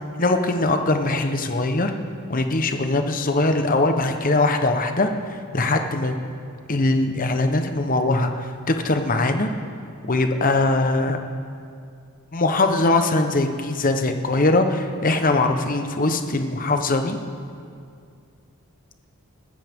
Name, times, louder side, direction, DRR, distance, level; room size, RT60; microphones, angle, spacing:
voice 1, 0.2-1.9 2.3-5.1 5.5-6.1 6.7-8.3 8.7-9.5 10.1-11.2 12.3-17.2, left 2 dB, 40° left, 6 dB, 0.9 m, -21 dB
21.5 x 13.5 x 3.6 m, 2.3 s
head